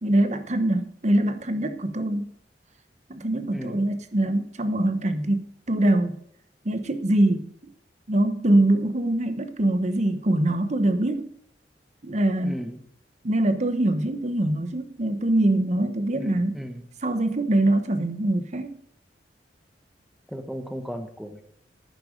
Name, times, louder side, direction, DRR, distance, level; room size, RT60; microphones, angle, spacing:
voice 1, 0.0-2.3 3.1-6.2 6.6-7.7 8.1-11.3 12.0-12.6 13.2-16.6 17.0-18.8, right 1 dB, 40° right, 9 dB, 1.0 m, -23 dB
voice 2, 3.5-3.9 12.4-12.8 16.2-16.8 20.3-21.4, equal, ahead, 6 dB, 1.1 m, -35 dB
10.5 x 9.9 x 5.1 m, 0.67 s
head